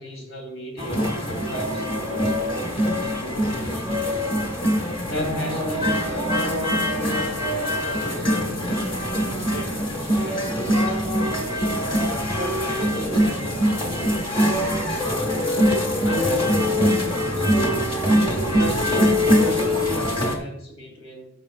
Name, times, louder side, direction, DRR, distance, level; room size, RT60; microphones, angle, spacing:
voice 1, 0.0-4.4 5.0-7.5 7.9-11.7 12.3-15.6 16.0-18.0 18.5-21.3, left 1 dB, 80° left, 2 dB, 2.7 m, -34 dB
sound 1, 0.8-20.4, equal, 25° left, 1.3 m, -23 dB
13.0 x 5.4 x 2.4 m, 0.75 s
head